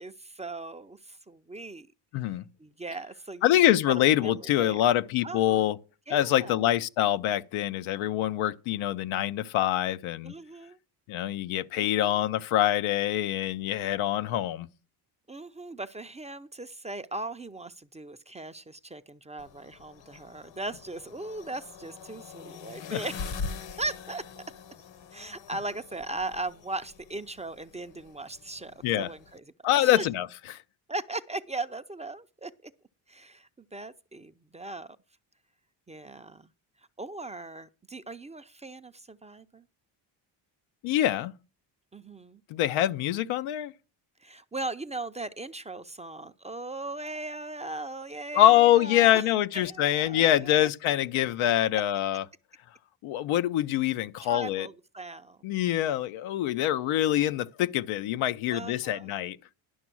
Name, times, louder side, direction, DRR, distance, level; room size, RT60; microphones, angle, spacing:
voice 1, 0.0-1.9 2.6-4.8 5.2-5.7 6.1-6.6 10.2-10.8 11.7-11.9 15.3-23.4 23.8-24.4 25.1-29.4 29.8-30.1 30.9-32.7 33.1-35.0 35.9-36.5 37.0-39.6 41.9-42.4 44.2-49.2 49.5-50.7 54.2-55.4 58.5-59.1, right 2 dB, 15° right, 0.5 m, -38 dB
voice 2, 2.1-2.4 3.4-5.8 6.1-10.3 11.1-14.7 22.9-23.0 28.8-29.1 29.6-30.6 40.8-41.3 42.5-43.7 48.3-52.2 53.0-54.7 55.4-59.4, left 13 dB, 80° left, 0.7 m, -25 dB
sound 1, 19.4-29.4, left 5 dB, 65° left, 1.1 m, -43 dB
11.0 x 6.1 x 6.0 m
cardioid pair, 85°, 48 cm